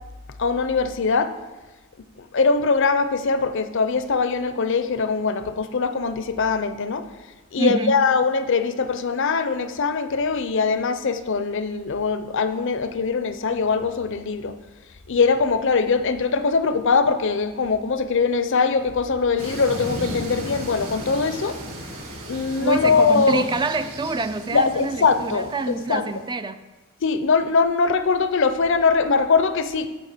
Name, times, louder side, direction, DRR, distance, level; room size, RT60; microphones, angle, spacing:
voice 1, 0.4-1.3 2.2-7.1 7.5-14.6 15.1-21.6 22.3-23.4 24.5-26.1 27.0-29.9, left 4 dB, 60° left, 10 dB, 0.6 m, -22 dB
voice 2, 7.6-8.0 22.6-26.6, right 3 dB, 20° right, 11 dB, 0.3 m, -26 dB
sound 1, 19.4-26.3, right 1 dB, 70° right, 2.3 m, -36 dB
9.2 x 7.8 x 5.0 m, 1.2 s
head